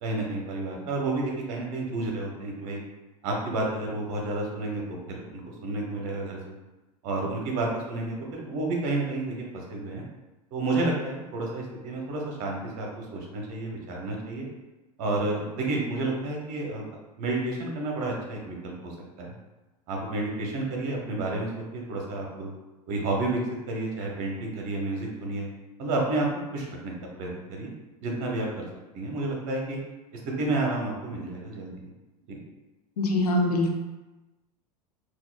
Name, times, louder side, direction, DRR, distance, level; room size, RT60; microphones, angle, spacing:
voice 1, 0.0-2.8 3.2-6.5 7.0-10.0 10.5-14.4 15.0-16.9 17.2-19.3 19.9-22.5 22.9-23.4 23.7-25.5 25.8-26.3 26.5-27.7 28.0-28.7 28.9-29.8 30.4-31.8 32.3-32.4, right 2 dB, 45° right, -1 dB, 0.8 m, -30 dB
voice 2, 33.0-33.7, left 1 dB, 70° left, 1 dB, 0.6 m, -23 dB
3.9 x 2.3 x 2.4 m, 1.1 s
figure-of-eight pair, 80°, 21 cm